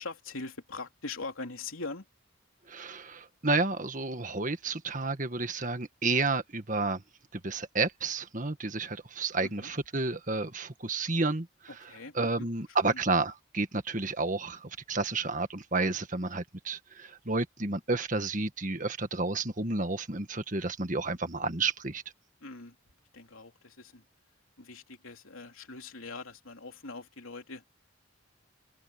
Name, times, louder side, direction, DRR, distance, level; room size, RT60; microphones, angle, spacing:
voice 1, 0.0-2.0 9.4-9.7 11.8-12.5 12.8-13.0 22.4-22.7 23.1-24.0 24.6-27.6, left 3 dB, 85° left, 3.3 m, -42 dB
voice 2, 2.7-7.0 7.3-11.5 12.1-22.0, right 3 dB, 40° right, 1.6 m, -31 dB
head